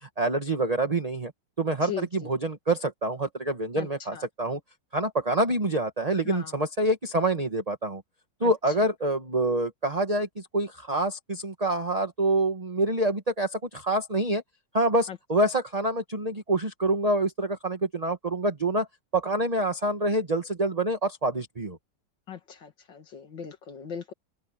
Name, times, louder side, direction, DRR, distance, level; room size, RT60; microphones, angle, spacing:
voice 1, 0.0-1.3 1.6-4.6 4.9-8.0 8.4-14.4 14.7-18.9 19.1-21.8, right 2 dB, 20° right, 1.7 m, -26 dB
voice 2, 1.8-2.3 3.8-4.2 6.2-6.5 8.4-8.5 15.1-15.2 22.3-24.1, left 8 dB, 90° left, 2.9 m, -38 dB
open air
omnidirectional pair, 1.9 m